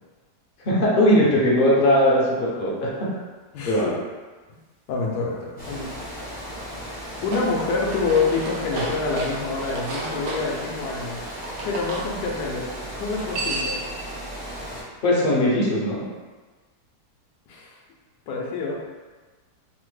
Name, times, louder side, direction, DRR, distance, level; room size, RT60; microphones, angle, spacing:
voice 1, 0.6-2.9 3.7-3.9 15.0-16.0, left 1 dB, 55° left, -5 dB, 0.6 m, -19 dB
voice 2, 3.5-3.9 4.9-5.9 7.2-11.2 11.6-13.8 17.5-17.8 18.3-18.8, left 4 dB, 80° left, -1 dB, 1.1 m, -27 dB
Water, 5.6-14.8, equal, 10° left, 0.5 m, -36 dB
sound 1, 7.1-12.0 13.0-13.9, right 2 dB, 70° right, 1.1 m, -32 dB
3.2 x 2.1 x 3.1 m, 1.3 s
omnidirectional pair, 1.7 m